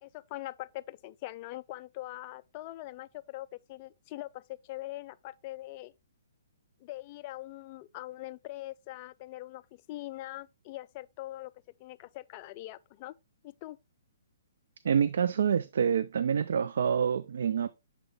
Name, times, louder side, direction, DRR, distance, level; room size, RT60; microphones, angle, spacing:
voice 1, 0.0-5.9 6.8-11.5 11.8-13.2 13.4-13.8, left 17 dB, 30° left, 0.4 m, -42 dB
voice 2, 14.8-17.7, right 7 dB, 65° right, 0.4 m, -27 dB
6.9 x 3.9 x 3.5 m
hypercardioid pair, 160°, 0 cm